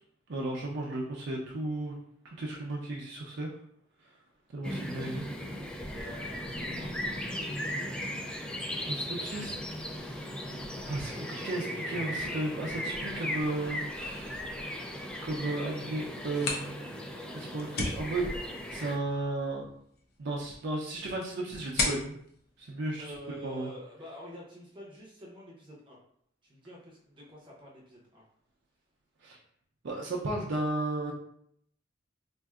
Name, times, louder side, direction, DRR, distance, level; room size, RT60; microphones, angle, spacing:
voice 1, 0.3-1.9 2.2-3.5 4.5-5.3 8.9-9.9 10.8-14.6 15.2-17.1 17.3-18.3 18.7-19.6 20.2-22.2 22.6-23.1 23.4-23.7 29.2-29.4 29.8-31.1, right 2 dB, 65° right, -2 dB, 0.5 m, -34 dB
sound 1, 4.6-19.0, equal, 5° left, 0.3 m, -37 dB
voice 2, 5.9-8.4 23.0-26.0 26.4-28.2, equal, 25° right, -4 dB, 0.7 m, -48 dB
sound 2, 16.1-23.7, left 3 dB, 55° left, 0.7 m, -38 dB
4.3 x 2.6 x 2.4 m, 0.68 s
head